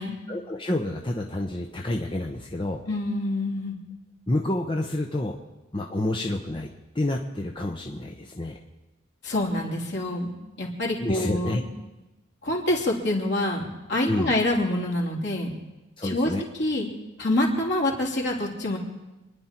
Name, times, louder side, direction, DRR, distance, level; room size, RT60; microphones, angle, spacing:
voice 1, 0.3-2.8 4.3-5.4 5.7-8.6 11.0-11.6 14.0-14.4 16.0-16.4, left 1 dB, 25° left, 1 dB, 0.9 m, -29 dB
voice 2, 2.9-3.7 9.2-10.3 10.6-11.6 12.4-15.5 16.0-16.3 16.6-16.9 17.2-18.8, left 1 dB, 55° left, -1 dB, 3.1 m, -26 dB
27.5 x 10.5 x 4.4 m, 1.1 s
head